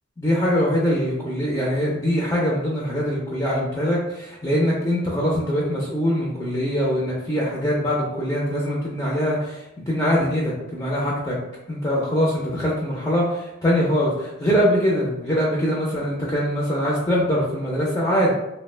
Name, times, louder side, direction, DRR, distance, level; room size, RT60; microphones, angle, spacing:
voice 1, 0.2-11.4 11.7-18.3, equal, 15° left, -5 dB, 0.4 m, -23 dB
2.9 x 2.1 x 3.2 m, 0.93 s
head